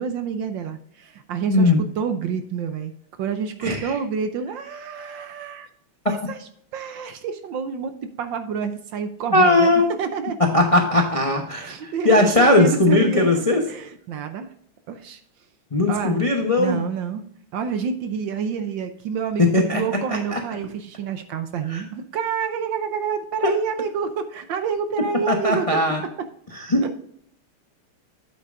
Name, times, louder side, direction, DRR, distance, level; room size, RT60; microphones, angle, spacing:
voice 1, 0.0-2.9 3.2-5.7 6.1-7.9 8.2-10.4 11.6-14.5 14.9-15.2 15.9-16.2 16.6-17.2 17.5-25.8 26.2-26.3 26.8-26.9, right 6 dB, 70° right, 9 dB, 1.3 m, -28 dB
voice 2, 3.6-3.9 9.3-9.9 10.5-13.6 15.7-16.8 19.4-19.8 20.1-20.4 21.7-21.8 23.4-23.5 25.3-26.0 26.5-27.0, left 2 dB, 40° left, 2 dB, 0.5 m, -19 dB
8.7 x 8.2 x 2.5 m, 0.67 s
omnidirectional pair, 2.4 m